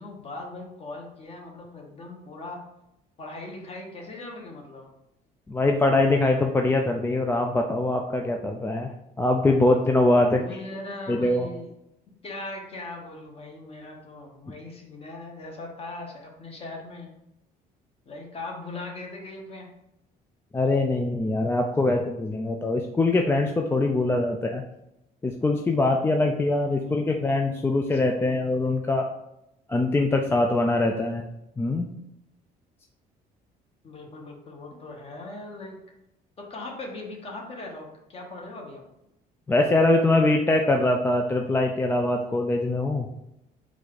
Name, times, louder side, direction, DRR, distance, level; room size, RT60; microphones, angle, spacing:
voice 1, 0.0-2.6 3.2-4.9 10.3-11.7 12.2-17.1 18.1-19.7 26.5-27.2 27.8-28.4 33.8-35.8 36.4-38.8, left 2 dB, 35° left, 1 dB, 1.0 m, -40 dB
voice 2, 5.5-8.9 9.2-10.4 11.1-11.5 20.5-24.6 25.2-29.1 29.7-31.2 31.6-31.9 39.5-43.1, left 2 dB, 15° left, 2 dB, 0.3 m, -23 dB
4.1 x 2.4 x 4.6 m, 0.86 s
cardioid pair, 110°, 17 cm